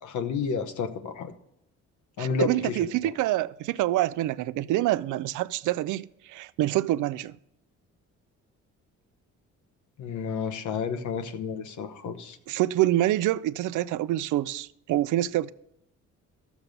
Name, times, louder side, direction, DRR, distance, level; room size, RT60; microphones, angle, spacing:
voice 1, 0.0-1.3 2.2-2.8 10.0-12.4, left 5 dB, 75° left, 1.1 m, -31 dB
voice 2, 2.2-7.3 12.5-15.5, right 14 dB, 80° right, 0.5 m, -26 dB
13.0 x 7.1 x 5.3 m
cardioid pair, 90°, 30 cm